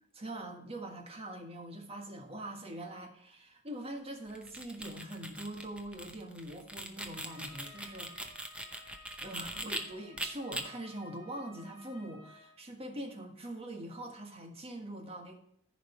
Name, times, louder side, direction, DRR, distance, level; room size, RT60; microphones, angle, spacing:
voice 1, 0.1-8.3 9.2-15.3, right 1 dB, 25° right, 3 dB, 1.5 m, -43 dB
sound 1, 4.3-9.8 10.2-10.6, right 1 dB, 5° right, 0.7 m, -41 dB
Trumpet, 7.3-12.6, left 1 dB, 40° left, 4.1 m, -56 dB
14.0 x 5.1 x 4.5 m, 0.70 s
head